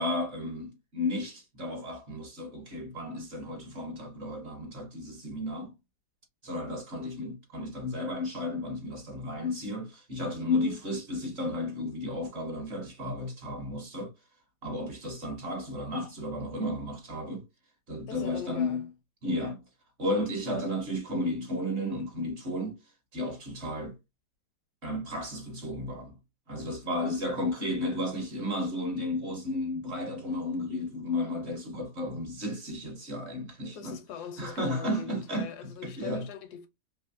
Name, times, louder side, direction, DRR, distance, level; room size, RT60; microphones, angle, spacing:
voice 1, 0.0-5.7 6.4-14.1 14.6-17.4 17.9-18.9 19.2-19.6 20.0-22.8 23.1-24.0 24.8-26.2 26.5-34.0 34.4-36.3, left 1 dB, 50° right, 1.0 m, -33 dB
voice 2, 10.5-10.9 18.1-18.8 26.9-27.2 33.7-36.7, left 7 dB, 80° left, 1.2 m, -42 dB
3.2 x 2.6 x 2.5 m
omnidirectional pair, 1.7 m